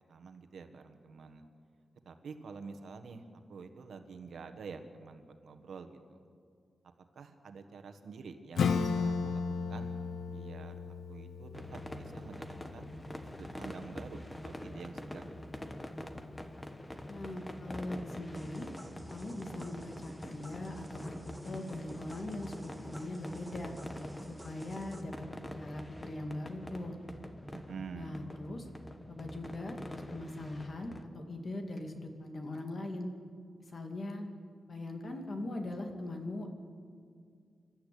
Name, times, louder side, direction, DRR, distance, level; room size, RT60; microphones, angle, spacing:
voice 1, 0.1-1.4 2.0-6.2 7.1-9.4 9.7-9.9 10.3-10.7 11.1-12.5 12.7-12.9 13.4-15.2 27.5-28.2, right 5 dB, 75° right, 7 dB, 1.6 m, -48 dB
Acoustic guitar / Strum, 8.6-13.8, left 5 dB, 75° left, 0.9 m, -35 dB
sound 1, 11.5-31.0, left 1 dB, 15° left, 1.1 m, -45 dB
voice 2, 17.1-18.7 19.1-21.2 21.4-23.7 24.3-25.1 25.5-26.9 27.9-28.7 29.1-33.1 33.7-34.2 34.7-36.5, left 1 dB, 40° left, 3 dB, 2.4 m, -41 dB
sound 2, 18.4-25.0, right 1 dB, 5° right, 1.7 m, -51 dB
27.0 x 12.5 x 8.6 m, 2.3 s
wide cardioid pair, 170°, 0 cm